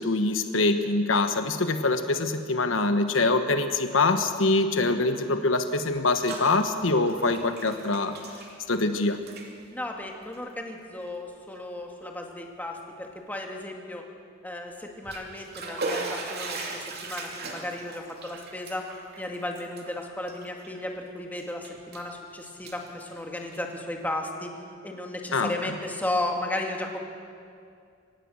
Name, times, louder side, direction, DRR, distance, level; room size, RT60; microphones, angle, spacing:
voice 1, 0.0-8.2 8.7-9.2 25.3-25.5, left 3 dB, 80° left, 8 dB, 1.2 m, -24 dB
Bathtub (filling or washing), 5.9-6.5 6.8-8.9 9.2-9.5 10.2-10.4 11.0-11.1 11.6-11.7 14.8-21.0 21.4-22.1 22.5-23.8, right 3 dB, 55° right, 2.8 m, -38 dB
voice 2, 9.7-14.1 14.4-18.9 19.2-24.5 24.8-27.0, left 1 dB, 10° left, 1 dB, 2.1 m, -34 dB
24.5 x 18.0 x 6.4 m, 2.3 s
head